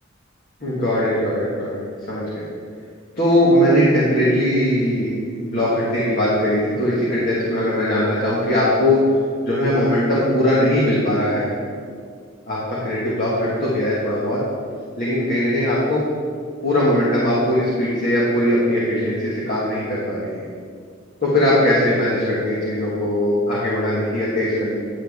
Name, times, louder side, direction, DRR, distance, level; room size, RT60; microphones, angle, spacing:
voice 1, 0.6-2.4 3.1-9.0 9.4-11.5 12.5-14.4 15.0-16.0 16.6-20.4 21.2-24.8, left 1 dB, 45° left, -8 dB, 1.8 m, -20 dB
10.0 x 7.6 x 3.6 m, 2.1 s
head